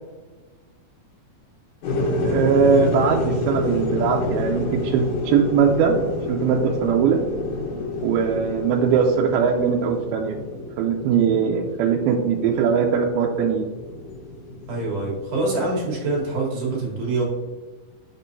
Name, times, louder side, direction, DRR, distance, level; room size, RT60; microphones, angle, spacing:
sound 1, 1.8-16.3, left 2 dB, 65° left, 2.6 m, -29 dB
voice 1, 2.2-6.0 6.3-7.2 8.0-10.4 10.8-13.7, right 6 dB, 90° right, 1 dB, 2.5 m, -20 dB
voice 2, 14.7-17.2, right 2 dB, 60° right, -3 dB, 2.8 m, -25 dB
6.2 x 6.1 x 2.7 m, 1.3 s
omnidirectional pair, 4.3 m